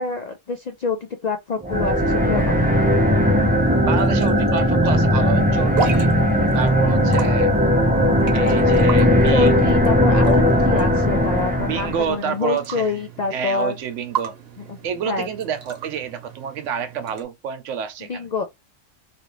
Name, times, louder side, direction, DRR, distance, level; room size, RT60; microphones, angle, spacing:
voice 1, 0.0-3.0 9.3-13.7 14.7-15.3 18.1-18.4, left 4 dB, 75° left, 0.3 m, -27 dB
sound 1, 1.6-12.1, equal, 10° right, 0.5 m, -18 dB
sound 2, 1.7-17.2, right 6 dB, 60° right, 1.0 m, -35 dB
voice 2, 3.8-6.1 6.5-7.5 8.3-9.7 11.6-13.0 13.3-14.3 14.8-18.3, right 7 dB, 80° right, 1.0 m, -28 dB
2.9 x 2.5 x 3.0 m
omnidirectional pair, 1.3 m